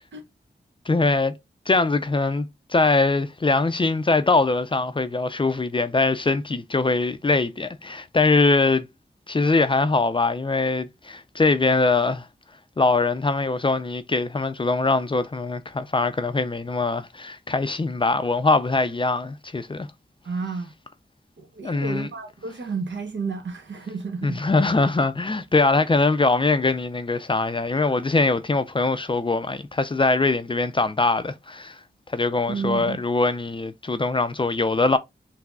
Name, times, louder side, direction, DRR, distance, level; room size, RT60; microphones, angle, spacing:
voice 1, 0.9-1.3 1.7-8.9 9.3-12.3 12.8-19.9 21.6-22.1 24.2-31.8 32.1-35.0, left 3 dB, 25° left, 0.4 m, -22 dB
voice 2, 20.2-20.8 21.4-24.4 32.5-33.0, right 4 dB, 80° right, 0.9 m, -31 dB
5.7 x 2.0 x 2.3 m
wide cardioid pair, 60°, 19 cm